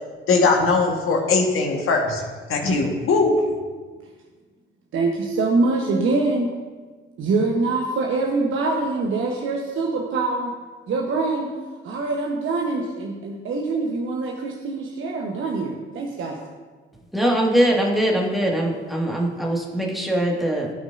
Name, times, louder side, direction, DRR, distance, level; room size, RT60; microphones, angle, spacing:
voice 1, 0.3-2.2 2.5-3.4, left 3 dB, 45° left, 1 dB, 1.6 m, -20 dB
voice 2, 4.9-6.5 7.2-10.5 10.9-11.5 11.8-16.4, right 3 dB, 40° right, 1 dB, 1.1 m, -24 dB
voice 3, 17.1-20.7, right 1 dB, ahead, -2 dB, 2.0 m, -22 dB
15.5 x 6.0 x 2.7 m, 1.4 s
figure-of-eight pair, 50°, 30 cm